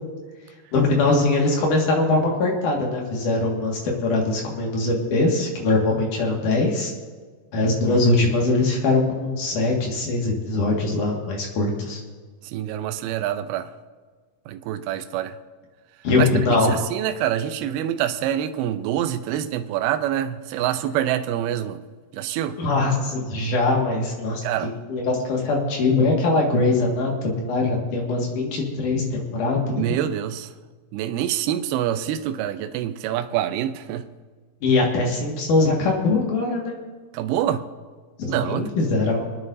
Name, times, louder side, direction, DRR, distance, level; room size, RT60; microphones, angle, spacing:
voice 1, 0.7-6.9 7.5-12.0 16.0-16.7 22.6-24.4 24.9-30.0 34.6-36.7 38.2-39.2, left 2 dB, 55° left, 2.9 m, -22 dB
voice 2, 12.4-13.7 14.5-15.4 16.2-16.3 16.7-21.8 22.1-22.6 24.4-24.7 29.8-30.5 30.9-34.1 37.1-37.6 38.3-38.7, right 11 dB, 80° right, 2.4 m, -26 dB
27.0 x 9.4 x 2.7 m
omnidirectional pair, 5.1 m